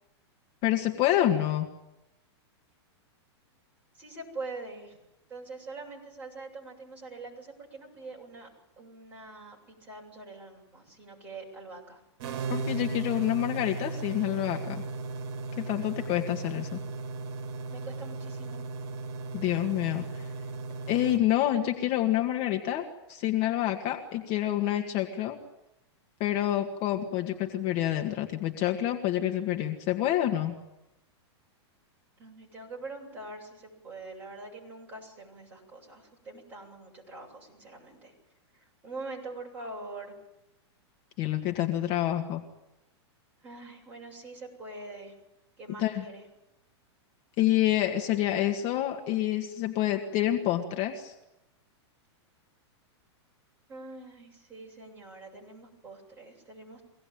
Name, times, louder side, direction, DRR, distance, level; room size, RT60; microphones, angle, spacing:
voice 1, 0.6-1.7 12.5-14.8 15.6-16.8 19.3-20.3 20.9-25.4 26.2-30.5 41.2-42.4 45.8-46.1 47.4-51.1, left 13 dB, 35° left, 3 dB, 1.9 m, -28 dB
voice 2, 3.9-5.0 5.3-8.5 8.8-12.0 17.7-18.6 32.2-38.1 38.8-40.1 43.4-45.1 45.6-46.2 53.7-56.8, right 3 dB, 10° right, -3 dB, 7.9 m, -44 dB
sound 1, 12.2-21.2, right 3 dB, 55° right, 2.1 m, -36 dB
24.0 x 18.5 x 9.1 m, 0.92 s
supercardioid pair, 155°, 15 cm